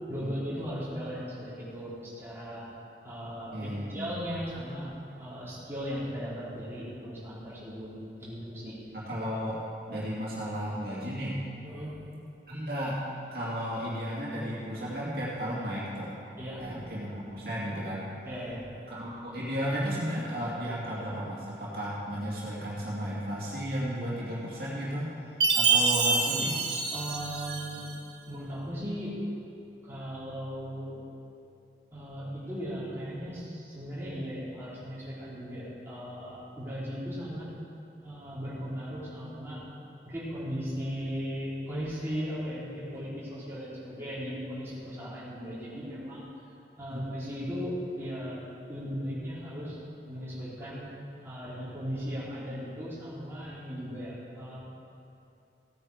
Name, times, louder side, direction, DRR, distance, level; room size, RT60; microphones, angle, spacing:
voice 1, 0.1-2.7 3.0-4.9 5.2-7.9 8.2-8.8 11.6-11.9 16.4-16.8 18.3-18.6 26.9-27.8 28.3-29.1 29.8-31.0 31.9-37.5 38.0-39.6 40.0-46.3 46.8-48.4 48.7-49.8 50.1-50.9 51.2-54.6, equal, 15° right, -10 dB, 3.6 m, -37 dB
voice 2, 3.5-4.1 8.9-9.6 9.9-11.4 12.5-13.0 13.3-16.1 16.6-18.1 18.9-25.1 25.5-26.6 46.9-47.0, equal, 60° right, -7 dB, 2.7 m, -34 dB
Chime, 25.4-27.9, right 4 dB, 85° right, 1.5 m, -26 dB
16.5 x 8.9 x 4.9 m, 2.7 s
head